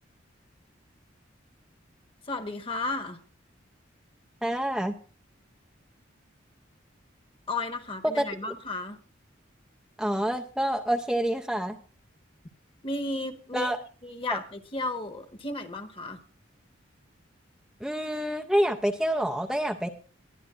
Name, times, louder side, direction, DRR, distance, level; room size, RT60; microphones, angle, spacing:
voice 1, 2.3-3.2 7.5-9.0 12.8-13.7 14.0-16.2, left 2 dB, 25° left, 7 dB, 1.3 m, -33 dB
voice 2, 4.4-4.9 8.1-8.3 10.0-11.8 13.5-13.8 14.3-14.4 17.8-19.9, equal, ahead, 2 dB, 0.6 m, -27 dB
21.0 x 11.5 x 2.5 m, 0.38 s
head